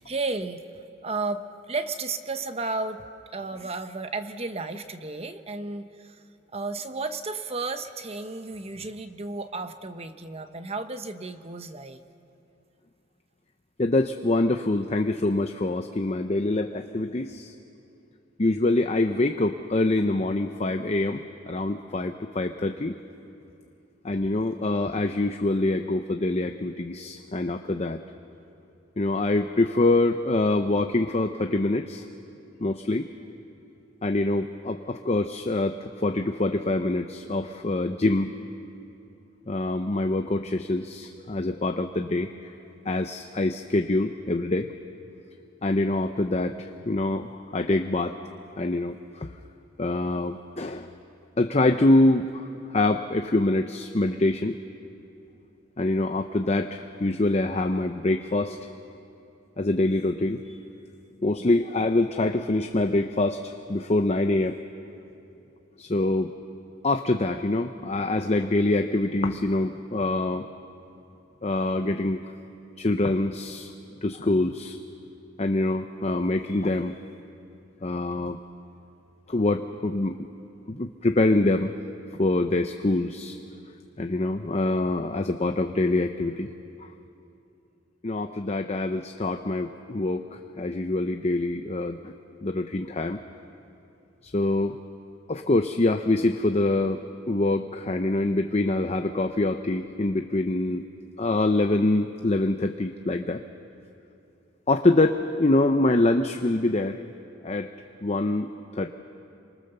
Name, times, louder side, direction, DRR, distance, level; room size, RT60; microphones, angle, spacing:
voice 1, 0.0-3.0 3.3-6.2 6.5-12.0, right 3 dB, 30° right, 9 dB, 0.9 m, -33 dB
voice 2, 13.8-17.5 18.4-21.2 21.5-22.9 24.0-28.0 29.0-32.0 32.6-33.1 34.0-38.3 39.5-42.3 42.9-44.7 45.6-48.2 48.6-49.3 49.8-50.9 51.4-54.6 55.8-58.6 59.6-60.6 61.2-64.6 65.8-66.3 66.8-70.5 71.4-72.2 72.8-73.7 74.0-74.8 75.4-77.0 77.8-78.4 79.3-80.2 80.7-81.7 82.2-83.4 84.0-86.5 88.0-92.1 92.4-93.2 94.2-94.8 95.3-100.8 101.2-103.4 104.7-107.0 107.4-107.7 108.0-108.9, left 2 dB, 30° left, 6 dB, 0.7 m, -25 dB
28.0 x 24.5 x 6.8 m, 2.7 s
head